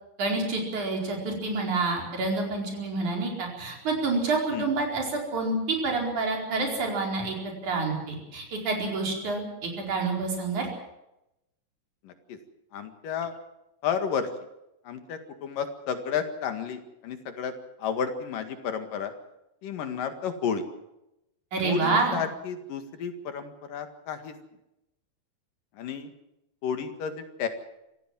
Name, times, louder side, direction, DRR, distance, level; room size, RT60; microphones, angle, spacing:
voice 1, 0.2-10.7 21.5-22.1, right 3 dB, 60° right, 1 dB, 6.0 m, -28 dB
voice 2, 12.0-12.4 12.7-13.3 13.8-14.3 14.9-17.5 17.8-19.1 19.6-20.6 21.6-24.4 25.7-26.1 26.6-27.5, left 7 dB, 80° left, 7 dB, 3.6 m, -32 dB
25.5 x 15.5 x 7.6 m, 0.87 s
omnidirectional pair, 3.8 m